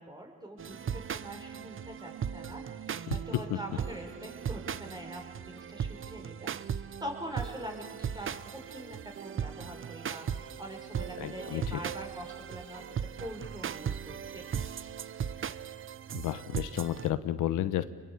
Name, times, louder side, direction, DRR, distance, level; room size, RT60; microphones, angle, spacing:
voice 1, 0.0-2.7 3.1-12.8 13.2-14.6, equal, 15° right, 2 dB, 6.0 m, -44 dB
sound 1, 0.6-17.1, right 8 dB, 45° right, 0.9 m, -38 dB
voice 2, 3.1-3.4 11.2-11.8 16.1-17.8, left 12 dB, 85° left, 12 dB, 1.2 m, -32 dB
28.0 x 22.0 x 8.5 m, 1.3 s
cardioid pair, 90°, 30 cm